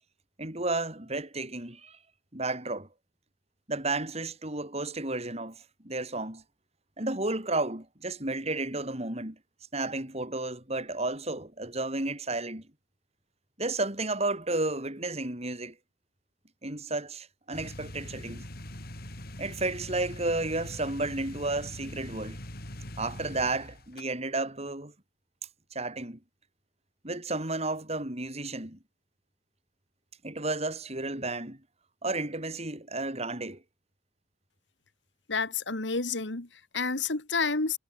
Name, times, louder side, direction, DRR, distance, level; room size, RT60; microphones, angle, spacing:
voice 1, 0.4-2.0 2.3-2.9 3.7-6.4 7.0-9.4 9.7-12.6 13.6-15.7 16.6-18.4 19.4-22.4 23.0-24.9 25.7-26.2 27.0-28.8 30.2-31.6 32.0-33.6, right 2 dB, 35° right, 5.6 m, -32 dB
sound 1, 17.5-24.0, left 1 dB, 55° left, 6.9 m, -42 dB
voice 2, 35.3-37.8, left 4 dB, 75° left, 2.2 m, -30 dB
head